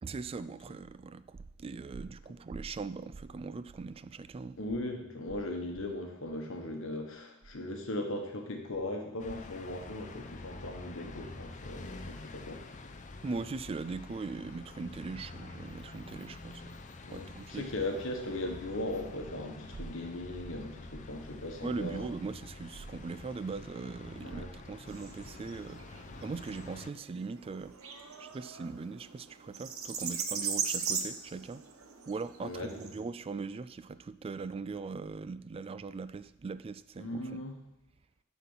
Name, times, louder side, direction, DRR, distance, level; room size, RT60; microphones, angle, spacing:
voice 1, 0.0-4.6 13.2-16.8 17.1-17.7 21.6-27.8 28.2-31.6 32.1-37.4, right 4 dB, 25° right, 14 dB, 0.3 m, -40 dB
voice 2, 4.6-12.8 17.0-22.1 24.2-24.5 32.4-32.9 37.0-37.5, left 1 dB, 65° left, 3 dB, 1.3 m, -38 dB
sound 1, 9.2-26.9, left 3 dB, 35° left, 0.6 m, -47 dB
sound 2, 24.9-32.9, right 6 dB, 85° right, 1.0 m, -39 dB
11.0 x 4.2 x 5.6 m, 0.85 s
head